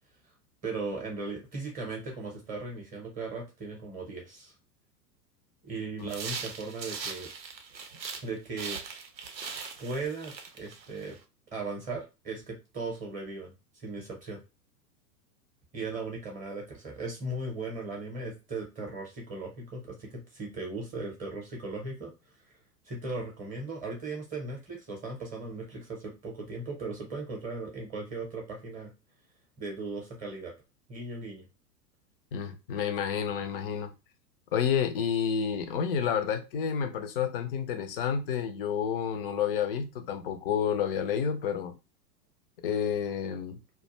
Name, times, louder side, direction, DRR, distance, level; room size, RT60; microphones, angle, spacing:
voice 1, 0.6-4.5 5.6-7.3 8.2-8.8 9.8-11.2 11.5-14.4 15.7-22.1 22.4-22.5 22.8-28.9 29.6-30.5 30.9-31.4, right 3 dB, 15° right, 0.7 m, -37 dB
sound 1, 6.1-8.3 8.6-11.2, right 5 dB, 85° right, 0.6 m, -40 dB
voice 2, 32.3-33.9 34.5-41.7 42.6-43.6, left 7 dB, 35° left, 0.4 m, -30 dB
2.3 x 2.2 x 2.8 m
figure-of-eight pair, 100°, 50 cm